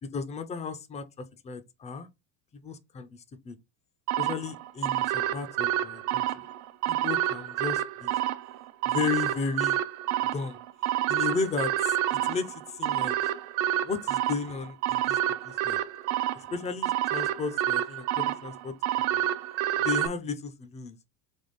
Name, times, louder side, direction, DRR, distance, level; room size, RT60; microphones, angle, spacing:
voice 1, 0.0-2.1 2.5-3.6 4.2-6.3 6.9-8.1 8.9-9.8 10.3-10.6 11.1-13.2 13.8-15.2 15.4-15.8 16.3-18.7 19.1-19.2 19.8-21.0, left 5 dB, 20° left, 0.3 m, -34 dB
sound 1, 4.1-20.1, right 13 dB, 85° right, 0.5 m, -29 dB
3.4 x 3.1 x 4.0 m
supercardioid pair, 115°, 41 cm